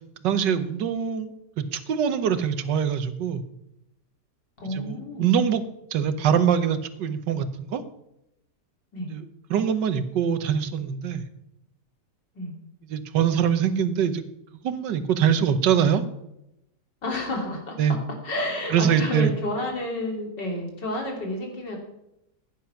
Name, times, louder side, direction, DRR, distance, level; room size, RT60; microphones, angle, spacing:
voice 1, 0.2-1.3 1.6-3.4 4.7-5.6 5.9-7.8 9.1-11.2 12.9-14.2 14.6-16.0 17.8-18.0 18.7-19.3, right 8 dB, 80° right, 11 dB, 1.6 m, -23 dB
voice 2, 4.6-5.3 8.9-9.1 12.4-12.5 17.0-17.8 18.2-21.8, left 1 dB, 80° left, 1 dB, 3.7 m, -30 dB
15.5 x 10.0 x 5.8 m, 0.85 s
omnidirectional pair, 1.9 m